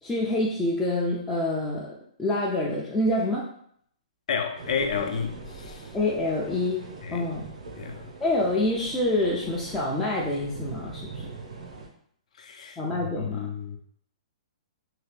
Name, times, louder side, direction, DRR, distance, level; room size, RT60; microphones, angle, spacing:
voice 1, 0.0-3.4 5.9-6.9 7.1-7.4 8.2-11.3 12.8-13.5, left 1 dB, 5° left, 0.3 m, -27 dB
voice 2, 4.3-5.8 7.0-7.3 7.8-8.1 12.4-13.8, left 6 dB, 65° left, 0.5 m, -31 dB
sound 1, 4.6-11.9, right 3 dB, 70° right, 0.7 m, -42 dB
2.8 x 2.4 x 3.3 m
hypercardioid pair, 165°, 4 cm